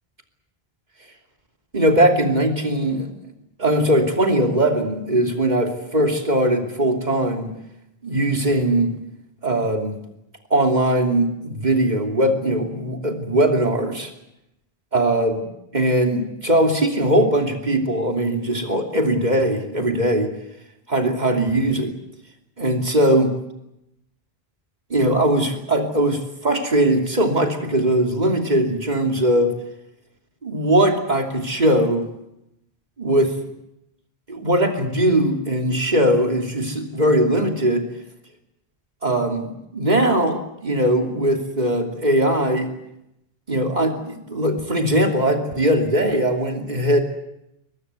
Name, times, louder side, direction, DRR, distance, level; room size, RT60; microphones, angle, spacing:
voice 1, 1.7-3.3 3.6-7.5 8.0-8.9 9.4-9.9 10.5-14.1 14.9-15.5 15.7-20.3 20.9-21.9 22.6-23.4 24.9-29.5 30.4-32.1 33.0-33.4 34.3-37.9 39.0-42.7 43.5-47.0, right 1 dB, 45° right, 3 dB, 3.1 m, -20 dB
22.0 x 22.0 x 8.3 m, 0.85 s
omnidirectional pair, 1.1 m